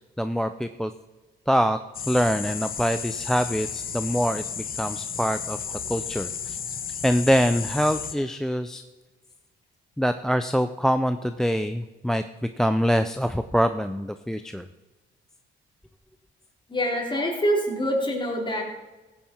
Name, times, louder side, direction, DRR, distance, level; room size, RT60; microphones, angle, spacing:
voice 1, 0.2-0.9 1.5-1.8 2.1-6.6 7.0-8.8 10.0-14.7, equal, ahead, 10 dB, 0.4 m, -24 dB
sound 1, 1.9-8.1, left 7 dB, 45° left, 1.0 m, -33 dB
voice 2, 16.7-18.6, equal, 25° left, -1 dB, 3.6 m, -25 dB
15.5 x 9.2 x 4.5 m, 1.2 s
cardioid pair, 90°, 20 cm